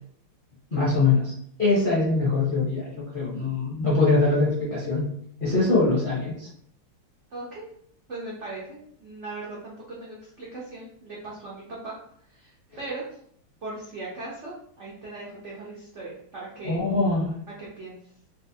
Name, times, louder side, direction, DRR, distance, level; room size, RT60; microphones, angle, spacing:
voice 1, 0.7-1.3 1.6-5.1 5.4-6.5 16.6-17.3, left 3 dB, 45° left, -8 dB, 0.7 m, -23 dB
voice 2, 7.3-7.7 8.1-11.9 12.3-13.1 13.6-16.8 17.6-18.0, right 2 dB, 85° right, -6 dB, 0.6 m, -38 dB
4.2 x 2.1 x 2.7 m, 0.64 s
omnidirectional pair, 2.3 m